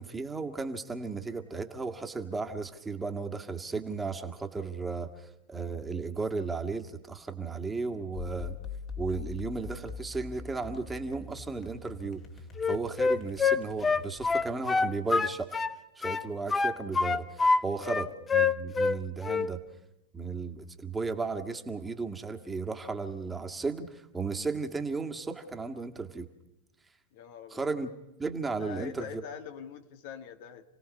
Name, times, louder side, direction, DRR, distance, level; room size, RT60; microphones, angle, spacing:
voice 1, 0.0-8.6 9.0-12.2 12.7-15.5 16.0-19.6 20.1-26.3 27.5-27.9 28.2-29.2, right 4 dB, 15° right, 5 dB, 2.0 m, -35 dB
sound 1, 8.1-14.5, left 5 dB, 40° left, 2.8 m, -43 dB
Wind instrument woodwind instrument, 12.6-15.7 16.0-17.6 17.9-19.0 19.2-19.5, left 4 dB, 20° left, 0.9 m, -26 dB
voice 2, 27.1-27.7 28.6-30.7, left 8 dB, 60° left, 7 dB, 1.7 m, -43 dB
29.5 x 18.0 x 5.5 m, 0.94 s
hypercardioid pair, 90°, 0 cm